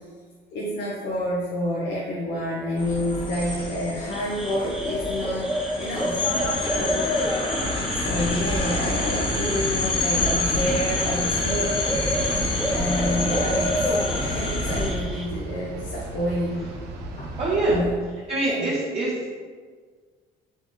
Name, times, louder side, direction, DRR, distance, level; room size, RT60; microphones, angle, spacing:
voice 1, 0.5-6.2 7.9-11.9 12.7-16.8 17.2-17.4 17.6-18.0 18.4-18.7, equal, 75° left, -4 dB, 0.8 m, -29 dB
sound 1, 2.8-14.9, left 2 dB, 30° left, 0.9 m, -27 dB
sound 2, 4.1-15.3, equal, ahead, 0.5 m, -30 dB
sound 3, 7.6-17.8, right 3 dB, 85° right, 0.6 m, -36 dB
voice 2, 17.4-17.8 18.3-19.1, right 2 dB, 40° right, -8 dB, 1.1 m, -23 dB
4.2 x 3.7 x 3.1 m, 1.5 s
cardioid pair, 110°, 17 cm